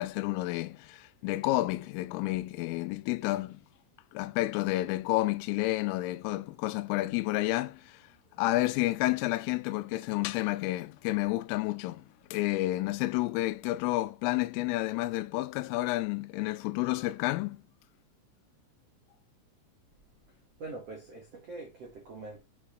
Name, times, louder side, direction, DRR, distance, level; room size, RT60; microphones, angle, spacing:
voice 1, 0.0-3.6 4.1-8.0 8.4-12.1 12.3-17.6, left 18 dB, 90° left, 3.2 m, -30 dB
voice 2, 20.6-22.4, right 3 dB, 75° right, 1.4 m, -43 dB
7.7 x 3.0 x 5.0 m
omnidirectional pair, 5.7 m